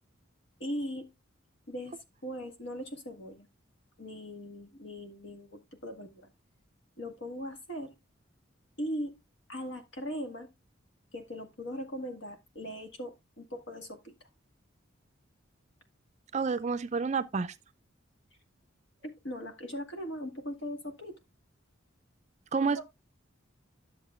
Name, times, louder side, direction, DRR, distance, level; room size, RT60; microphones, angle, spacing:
voice 1, 0.6-1.1 1.7-2.0 2.2-3.5 4.0-6.3 7.0-7.9 8.8-9.2 9.5-10.5 11.1-14.1 19.0-21.2 22.6-22.8, equal, 65° left, 1.9 m, -39 dB
voice 2, 16.3-17.5 22.5-22.8, right 5 dB, 35° right, 0.4 m, -29 dB
11.0 x 7.2 x 2.4 m
head